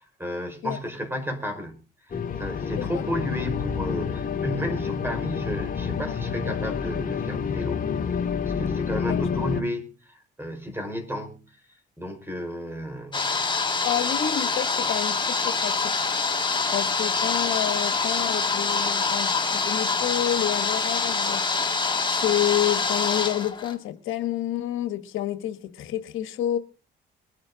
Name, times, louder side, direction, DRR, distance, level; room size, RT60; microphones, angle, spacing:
voice 1, 0.0-1.8 2.4-7.8 8.4-11.4 12.0-13.8, equal, 10° right, 5.1 m, -33 dB
sound 1, 2.1-9.6, left 6 dB, 45° left, 2.6 m, -28 dB
sound 2, 13.1-23.7, left 4 dB, 25° left, 2.1 m, -25 dB
voice 2, 13.8-15.9 16.7-21.4 22.2-26.6, left 12 dB, 85° left, 1.4 m, -29 dB
22.5 x 9.6 x 3.9 m
cardioid pair, 90°, 20 cm